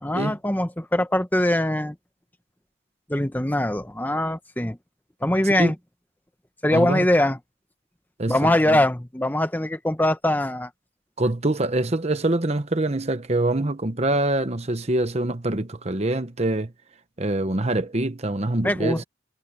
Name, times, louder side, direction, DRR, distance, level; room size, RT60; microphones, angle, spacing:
voice 1, 0.0-1.9 3.1-4.8 5.2-5.7 6.6-7.4 8.3-10.7 18.6-19.0, left 1 dB, 10° left, 1.0 m, -22 dB
voice 2, 8.2-8.8 11.2-16.7 17.2-19.0, right 2 dB, 35° right, 1.1 m, -24 dB
head